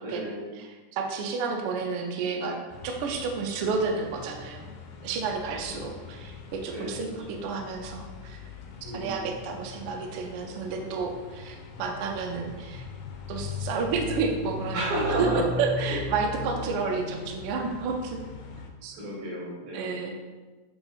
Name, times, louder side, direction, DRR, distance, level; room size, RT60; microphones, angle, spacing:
voice 1, 0.0-0.6 5.7-5.9 6.7-7.2 8.8-9.3 14.7-15.4 15.8-16.0 16.5-16.9 18.9-20.1, right 1 dB, 70° right, -6 dB, 3.5 m, -33 dB
voice 2, 0.5-2.6 2.8-4.7 5.0-8.4 8.9-12.8 13.3-14.8 15.2-18.2 18.8-18.9 19.7-20.1, right 4 dB, 90° right, 2 dB, 1.2 m, -31 dB
sound 1, 2.7-18.7, left 3 dB, 85° left, 2.2 m, -40 dB
8.5 x 3.0 x 4.0 m, 1.3 s
omnidirectional pair, 3.6 m